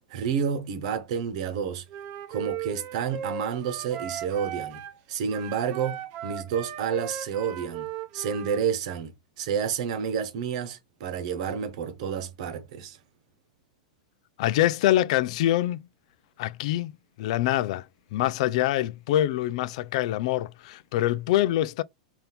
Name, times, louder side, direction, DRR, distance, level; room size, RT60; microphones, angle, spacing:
voice 1, 0.1-1.8 2.3-4.8 5.1-7.9 8.1-13.0, right 7 dB, 60° right, 1.0 m, -30 dB
Wind instrument woodwind instrument, 1.9-5.0 5.3-8.7, right 10 dB, 45° right, 0.7 m, -37 dB
voice 2, 14.4-15.8 16.4-16.9 17.2-17.8 18.1-21.8, left 14 dB, 60° left, 0.3 m, -25 dB
4.2 x 2.7 x 3.4 m
hypercardioid pair, 130°, 4 cm